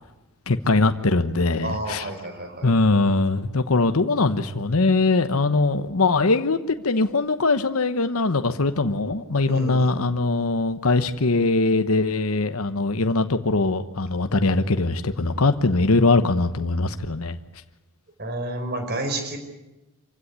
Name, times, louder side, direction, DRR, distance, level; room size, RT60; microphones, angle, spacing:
voice 1, 0.5-2.1 2.6-6.6 6.8-17.4, left 3 dB, 90° left, 9 dB, 1.1 m, -21 dB
voice 2, 1.6-2.7 9.5-9.9 18.2-19.4, right 2 dB, 50° right, 7 dB, 4.5 m, -30 dB
26.5 x 16.5 x 9.9 m, 1.0 s
head